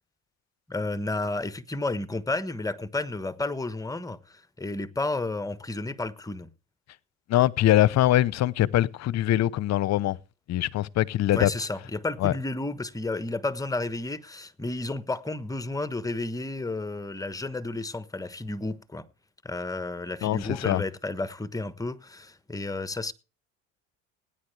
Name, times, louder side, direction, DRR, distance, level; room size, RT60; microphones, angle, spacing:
voice 1, 0.7-6.5 11.3-19.1 19.4-23.1, left 2 dB, 10° left, 1.2 m, -32 dB
voice 2, 7.3-10.2 10.5-11.5 12.2-12.3 20.2-20.8, left 14 dB, 50° left, 0.8 m, -23 dB
18.0 x 10.0 x 3.3 m
supercardioid pair, 90°, 35 cm